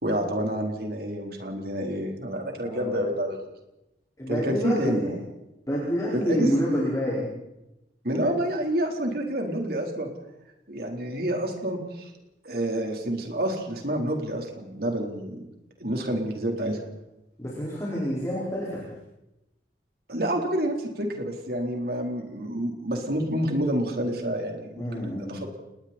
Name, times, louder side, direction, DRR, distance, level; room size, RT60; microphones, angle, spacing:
voice 1, 0.0-3.4 4.3-5.1 6.1-6.5 8.0-10.1 10.7-12.1 12.4-15.4 15.8-16.8 20.1-25.6, right 1 dB, 55° right, 2 dB, 4.1 m, -28 dB
voice 2, 2.6-3.0 4.2-5.1 5.7-7.3 17.4-18.9 24.8-25.4, equal, 20° left, -8 dB, 5.3 m, -28 dB
29.5 x 20.5 x 4.5 m, 0.93 s
head